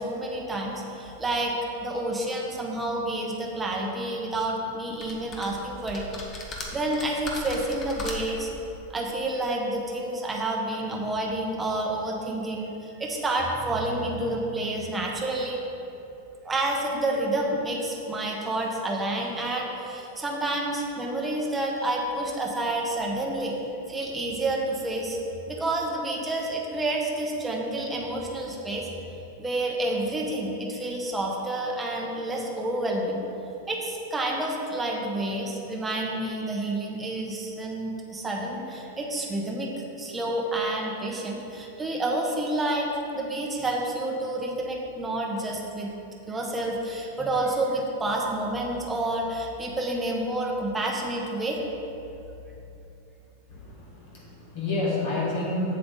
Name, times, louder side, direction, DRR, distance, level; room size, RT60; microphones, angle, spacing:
voice 1, 0.0-1.5 1.8-6.0 6.7-8.5 8.9-15.6 16.4-23.6 23.9-25.2 25.5-28.9 29.4-33.2 33.7-39.7 40.0-45.9 46.3-51.6, right 1 dB, 10° right, -1 dB, 1.0 m, -29 dB
sound 1, 5.0-5.5 5.9-8.4, left 2 dB, 25° left, 1.1 m, -36 dB
voice 2, 53.5-55.8, left 2 dB, 45° left, -5 dB, 1.9 m, -29 dB
7.7 x 7.6 x 3.8 m, 2.9 s
supercardioid pair, 155°, 0 cm